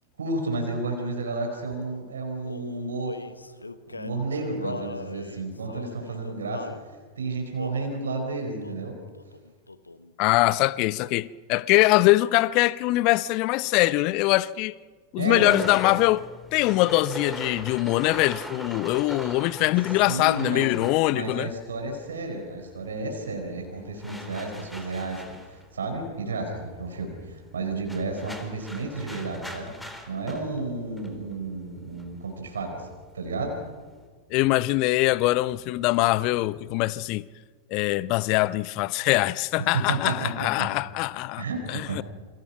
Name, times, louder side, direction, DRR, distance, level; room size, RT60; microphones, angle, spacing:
voice 1, 0.2-3.2 3.9-6.7 7.2-9.0 15.2-15.7 20.1-20.7 21.1-29.7 30.1-32.9 33.1-33.6 39.6-40.7 41.4-42.0, right 3 dB, 70° right, 4.7 m, -32 dB
Male singing, 2.4-6.8 7.6-8.0 8.6-8.9 9.2-10.1, left 2 dB, 80° left, 1.1 m, -39 dB
voice 2, 10.2-14.7 15.1-16.2 16.5-21.5 34.3-37.3 37.7-42.0, left 19 dB, 40° left, 0.8 m, -23 dB
sound 1, 15.5-22.2 22.4-34.1, equal, 5° left, 3.7 m, -41 dB
28.5 x 25.5 x 5.9 m
figure-of-eight pair, 90°, 0 cm